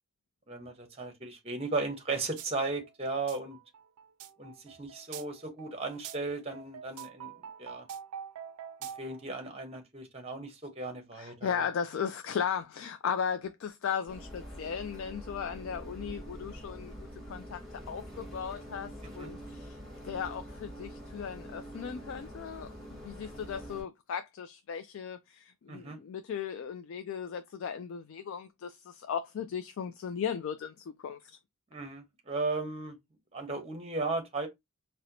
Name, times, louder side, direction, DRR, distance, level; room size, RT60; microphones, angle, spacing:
voice 1, 0.5-3.6 4.4-7.9 9.0-11.7 19.0-19.3 25.7-26.0 31.7-33.0 33.3-34.5, right 3 dB, 25° right, 0.8 m, -36 dB
sound 1, 2.4-2.5 2.8-9.2, right 8 dB, 85° right, 0.4 m, -45 dB
voice 2, 11.2-17.6 17.9-19.8 20.0-31.4, left 7 dB, 60° left, 0.3 m, -36 dB
sound 2, 14.1-23.8, equal, ahead, 2.0 m, -45 dB
4.2 x 2.1 x 2.6 m
head